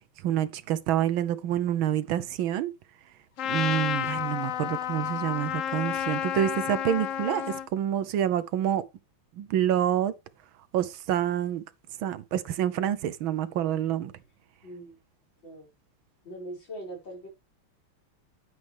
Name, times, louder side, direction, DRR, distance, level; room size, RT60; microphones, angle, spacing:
voice 1, 0.2-2.7 3.5-8.8 9.4-10.1 10.7-11.6 12.0-14.1, right 10 dB, 75° right, 1.5 m, -27 dB
Trumpet, 3.4-7.7, left 10 dB, 85° left, 0.7 m, -31 dB
voice 2, 14.6-15.0 15.4-15.7 16.2-17.3, right 1 dB, 60° left, 6.0 m, -41 dB
9.8 x 9.4 x 3.3 m
omnidirectional pair, 2.3 m